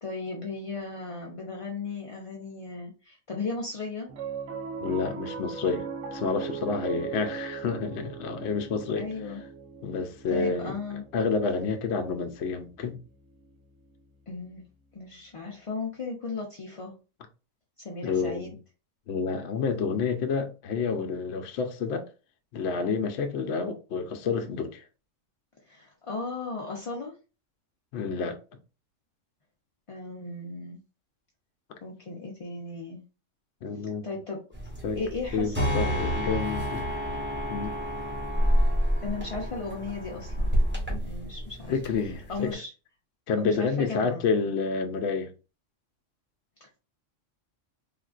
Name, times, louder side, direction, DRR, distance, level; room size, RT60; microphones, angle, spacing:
voice 1, 0.0-4.1 9.0-9.4 10.3-11.0 14.3-14.7 14.9-17.0 17.8-18.5 25.7-27.2 29.9-30.8 31.8-33.0 34.0-34.4 35.0-36.1 39.0-40.6 41.0-41.7 42.3-42.7 43.4-44.3 46.6-46.8, left 4 dB, 45° left, 0.4 m, -36 dB
Piano, 4.1-14.6, right 6 dB, 70° right, 0.9 m, -40 dB
voice 2, 4.8-9.1 9.8-10.7 11.1-13.0 18.0-18.5 19.1-22.1 22.5-24.8 27.9-28.4 33.6-34.0 34.8-35.0 35.3-36.9 37.5-37.8 41.7-42.6 43.3-45.3, left 5 dB, 65° left, 0.8 m, -29 dB
sound 1, 34.5-42.5, equal, 10° right, 0.9 m, -29 dB
3.7 x 2.4 x 2.4 m
omnidirectional pair, 1.3 m